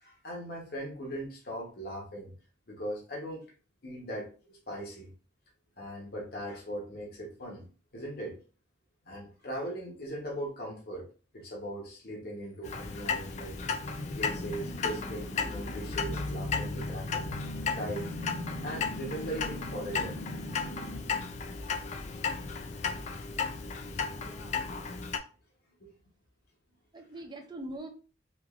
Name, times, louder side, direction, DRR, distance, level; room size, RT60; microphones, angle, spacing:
voice 1, 0.0-2.3 2.7-3.4 3.8-5.1 5.8-7.7 7.9-8.4 9.1-11.1 11.3-13.6 13.9-17.3 17.7-18.1 18.6-20.2 20.7-20.8 23.2-23.4 23.8-23.9 25.8-25.9, right 1 dB, 55° left, -1 dB, 0.8 m, -39 dB
sound 1, 12.6-21.2, left 1 dB, 90° left, 0.6 m, -41 dB
Clock, 12.6-25.2, left 5 dB, 40° left, 0.3 m, -35 dB
voice 2, 16.0-16.9 24.1-24.7 26.9-27.9, right 1 dB, 25° right, 4 dB, 0.5 m, -44 dB
3.1 x 2.5 x 2.3 m, 0.36 s
head